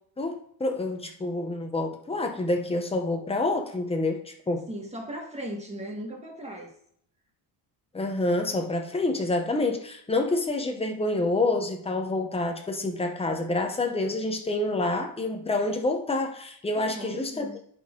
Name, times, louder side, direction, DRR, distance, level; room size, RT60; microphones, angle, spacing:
voice 1, 0.2-4.7 7.9-17.5, left 2 dB, 15° left, 4 dB, 0.8 m, -27 dB
voice 2, 4.7-6.7 16.8-17.6, equal, 15° right, 1 dB, 1.4 m, -37 dB
10.0 x 4.3 x 3.7 m, 0.65 s
cardioid pair, 160°, 43 cm